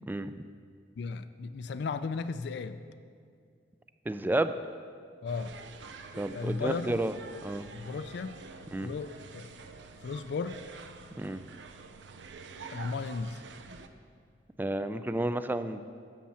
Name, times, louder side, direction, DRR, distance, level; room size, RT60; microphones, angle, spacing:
voice 1, 0.1-0.4 4.1-4.6 6.1-7.1 7.4-7.6 8.7-8.9 11.2-11.4 14.6-15.8, right 1 dB, 10° right, 11 dB, 0.3 m, -31 dB
voice 2, 1.0-2.8 5.2-5.5 6.3-7.0 7.7-8.4 8.8-9.5 10.0-10.6 12.7-13.4, left 4 dB, 65° left, 11 dB, 0.4 m, -35 dB
sound 1, 5.3-13.9, right 4 dB, 75° right, 0.6 m, -47 dB
12.5 x 7.4 x 4.4 m, 2.2 s
head